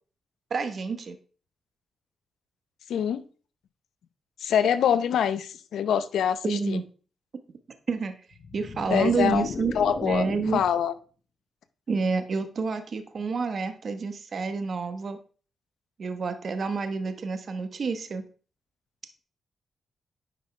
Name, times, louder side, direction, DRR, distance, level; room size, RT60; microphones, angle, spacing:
voice 1, 0.5-1.2 6.4-6.8 7.9-8.2 8.5-9.7 10.0-10.6 11.9-15.2 16.0-18.2, right 4 dB, 55° right, 9 dB, 1.1 m, -28 dB
voice 2, 2.9-3.2 4.4-6.8 8.9-10.2 10.5-10.9, left 8 dB, 85° left, 13 dB, 0.7 m, -25 dB
sound 1, 8.3-10.8, left 5 dB, 65° left, 1.1 m, -37 dB
10.0 x 5.4 x 3.3 m, 0.39 s
cardioid pair, 70°, 0 cm